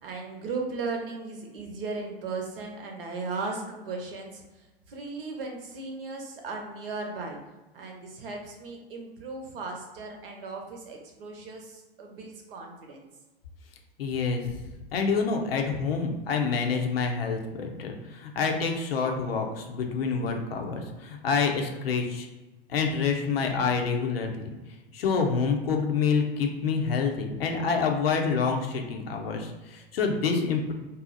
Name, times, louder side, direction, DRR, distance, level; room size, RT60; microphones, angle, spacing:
voice 1, 0.0-4.4 4.9-7.4 7.7-13.1, right 3 dB, 65° right, 1 dB, 0.8 m, -36 dB
voice 2, 14.0-14.5 14.9-22.3 22.7-24.5 24.9-30.7, left 5 dB, 70° left, 3 dB, 0.7 m, -27 dB
2.7 x 2.0 x 4.0 m, 1.1 s
hypercardioid pair, 95°, 30 cm